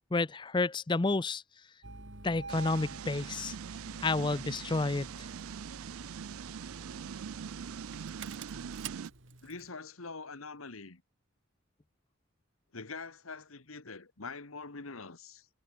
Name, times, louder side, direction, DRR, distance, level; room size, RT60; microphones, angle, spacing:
voice 1, 0.1-1.4 2.2-3.6 4.0-5.1, left 3 dB, 20° left, 0.5 m, -30 dB
Engine starting, 1.8-9.7, right 3 dB, 60° right, 2.8 m, -48 dB
sound 1, 2.5-9.1, right 7 dB, 90° right, 0.4 m, -43 dB
voice 2, 9.4-11.0 12.7-15.5, left 4 dB, 85° left, 1.8 m, -44 dB
head